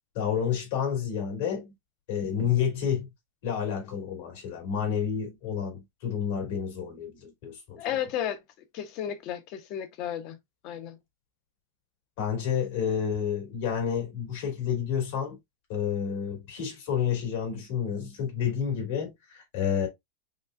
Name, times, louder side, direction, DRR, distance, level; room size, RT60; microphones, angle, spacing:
voice 1, 0.1-1.7 2.1-3.1 3.4-7.8 12.2-15.4 15.7-19.9, left 8 dB, 65° left, 2.6 m, -30 dB
voice 2, 7.8-8.4 8.7-10.4 10.6-11.0, left 10 dB, 45° left, 0.9 m, -33 dB
5.3 x 2.5 x 2.4 m
supercardioid pair, 125°, 0 cm